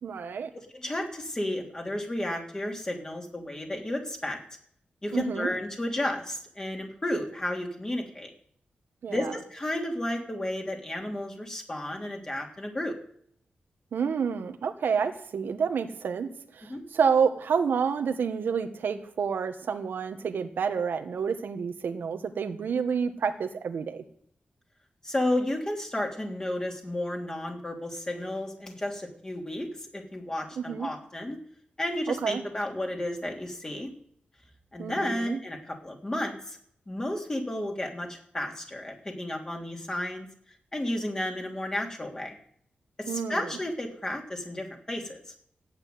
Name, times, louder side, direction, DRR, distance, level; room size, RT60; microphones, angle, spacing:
voice 1, 0.0-0.5 5.1-5.5 9.0-9.3 13.9-24.0 30.6-30.9 32.1-32.4 34.8-35.4 43.1-43.6, right 6 dB, 85° right, 7 dB, 1.6 m, -29 dB
voice 2, 0.5-4.4 5.0-8.3 9.1-13.0 16.7-16.8 25.0-31.4 31.8-33.9 34.7-36.6 36.9-40.3 40.7-42.3 43.0-45.2, left 1 dB, 20° left, 1 dB, 3.3 m, -32 dB
14.5 x 9.0 x 9.5 m, 0.64 s
wide cardioid pair, 145°, 3 cm